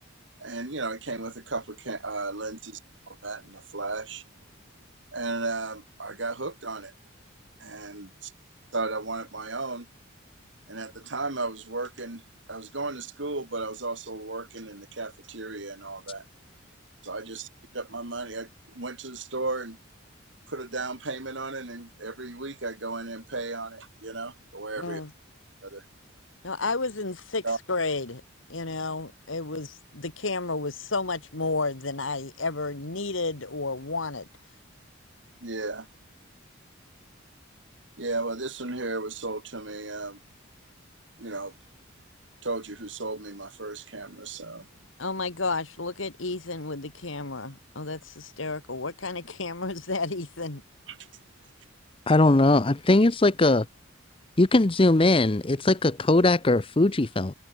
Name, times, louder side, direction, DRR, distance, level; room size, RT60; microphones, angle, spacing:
voice 1, 0.4-2.8 3.1-4.2 5.1-6.9 7.6-8.3 8.7-9.9 10.7-12.2 12.5-16.2 17.0-17.5 17.7-19.8 20.5-25.0 25.6-25.8 27.4-27.6 35.4-35.9 38.0-40.2 41.2-41.5 42.4-44.7 50.9-51.1, right 3 dB, 65° right, 3.0 m, -34 dB
voice 2, 24.8-25.1 26.4-28.2 28.5-34.3 45.0-50.6, left 3 dB, 75° left, 2.3 m, -31 dB
voice 3, 52.1-53.7 54.4-57.3, left 2 dB, 25° left, 0.7 m, -20 dB
head